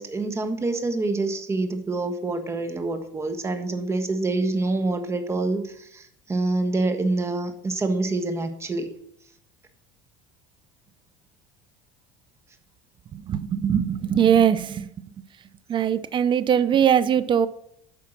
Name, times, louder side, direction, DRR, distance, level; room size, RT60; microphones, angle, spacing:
voice 1, 0.0-8.9, right 2 dB, 20° right, 7 dB, 1.4 m, -26 dB
voice 2, 13.1-14.9 15.7-17.5, right 8 dB, 35° right, 15 dB, 0.6 m, -21 dB
9.0 x 5.7 x 5.8 m, 0.72 s
supercardioid pair, 105°, 14 cm